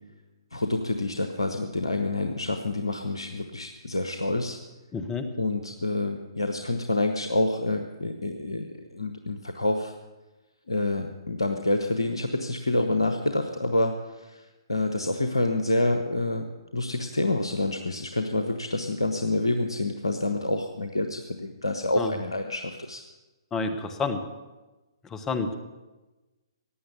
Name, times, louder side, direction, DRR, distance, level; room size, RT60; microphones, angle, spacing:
voice 1, 0.5-4.6 5.4-9.9 10.7-23.0, left 2 dB, 85° left, 6 dB, 1.0 m, -27 dB
voice 2, 4.9-5.2 22.0-22.1 23.5-24.2 25.1-25.6, left 4 dB, 15° left, 9 dB, 1.2 m, -29 dB
16.0 x 9.7 x 6.9 m, 1.1 s
figure-of-eight pair, 125°, 3 cm